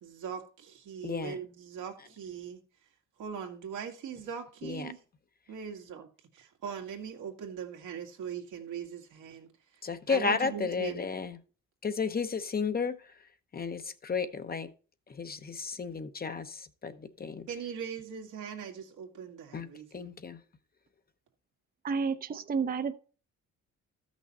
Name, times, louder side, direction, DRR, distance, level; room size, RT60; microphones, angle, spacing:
voice 1, 0.0-2.6 3.2-5.0 5.5-6.1 6.3-9.5 10.1-11.1 17.5-20.1, right 7 dB, 85° right, 1.9 m, -40 dB
voice 2, 1.0-1.4 4.6-4.9 9.8-11.4 11.8-13.0 13.5-14.7 15.1-17.5 19.5-19.7 19.9-20.4, left 5 dB, 30° left, 0.8 m, -33 dB
voice 3, 21.8-22.9, right 5 dB, 30° right, 0.6 m, -30 dB
13.0 x 6.1 x 4.1 m
cardioid pair, 90°, 30 cm